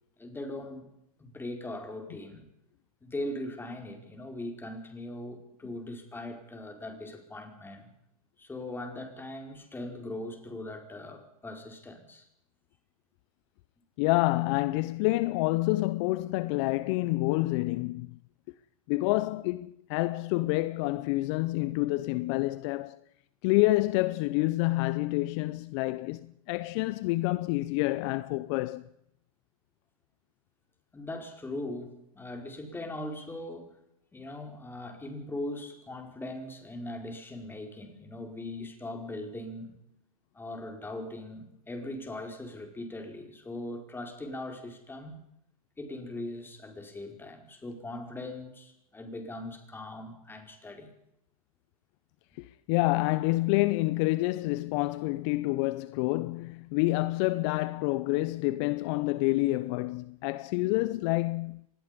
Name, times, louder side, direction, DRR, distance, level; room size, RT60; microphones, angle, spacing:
voice 1, 0.2-0.9 1.2-2.5 3.0-7.9 8.4-12.3 30.9-33.8 34.1-39.7 40.3-45.2 45.8-50.9, left 1 dB, 10° left, 4.9 m, -40 dB
voice 2, 14.0-18.2 18.9-23.0 23.4-28.8 52.3-61.7, left 20 dB, 50° left, 0.8 m, -28 dB
25.5 x 20.0 x 5.3 m
hypercardioid pair, 110°, 19 cm